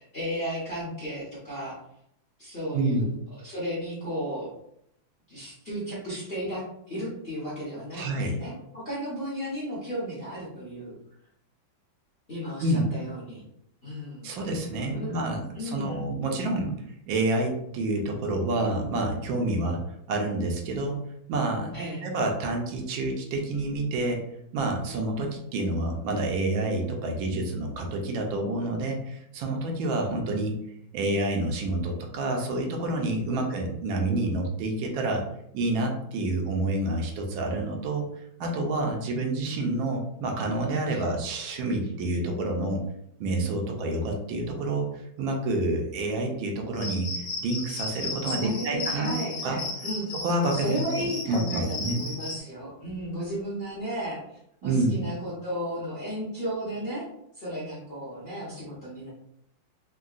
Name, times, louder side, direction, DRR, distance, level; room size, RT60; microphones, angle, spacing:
voice 1, 0.1-1.8 2.4-3.1 3.4-4.5 5.3-10.9 12.3-13.4 13.8-14.3 14.9-15.2 15.5-16.0 21.7-22.1 33.3-33.5 40.9-41.1 48.2-50.1 50.5-57.0 57.4-59.1, equal, 40° left, -8 dB, 0.8 m, -34 dB
voice 2, 7.9-8.3 12.6-12.9 14.2-16.7 17.1-19.8 20.1-21.0 21.3-21.8 22.0-24.2 24.5-30.6 30.9-35.2 35.5-38.1 38.4-42.8 43.2-49.6 50.1-52.0 54.6-55.0, right 2 dB, 80° right, 2 dB, 1.4 m, -28 dB
Cricket, 46.7-52.4, left 3 dB, 65° left, 0.5 m, -35 dB
3.7 x 2.2 x 2.4 m, 0.75 s
omnidirectional pair, 2.2 m